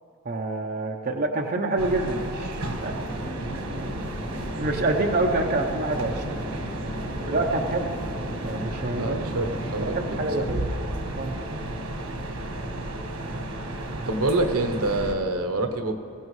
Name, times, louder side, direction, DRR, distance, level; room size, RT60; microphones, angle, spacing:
voice 1, 0.2-3.0 4.6-6.4 7.2-7.9 8.4-9.2 9.8-10.6 11.1-11.3, right 2 dB, 40° right, 1 dB, 0.7 m, -27 dB
sound 1, 1.8-15.2, right 1 dB, 90° right, 1.3 m, -33 dB
sound 2, 2.9-10.5, equal, ahead, 1.8 m, -36 dB
voice 2, 9.0-10.5 14.1-16.0, right 2 dB, 70° right, 5 dB, 1.0 m, -26 dB
21.5 x 16.5 x 3.2 m, 2.7 s
head